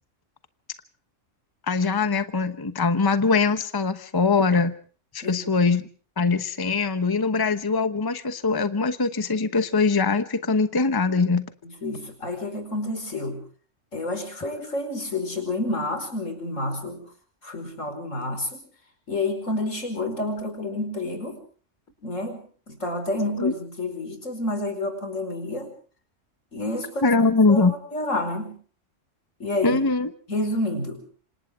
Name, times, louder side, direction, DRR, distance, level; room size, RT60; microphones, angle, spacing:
voice 1, 1.7-4.7 5.1-5.8 6.2-11.5 23.4-23.5 27.0-27.7 29.6-30.1, left 4 dB, 20° left, 10 dB, 1.0 m, -22 dB
voice 2, 11.6-13.4 13.9-17.0 17.4-18.6 19.1-21.4 22.0-25.7 26.5-27.1 27.5-28.5 29.4-29.8 30.3-31.0, left 2 dB, 80° left, 7 dB, 5.4 m, -29 dB
27.5 x 26.5 x 3.6 m, 0.42 s
omnidirectional pair, 1.3 m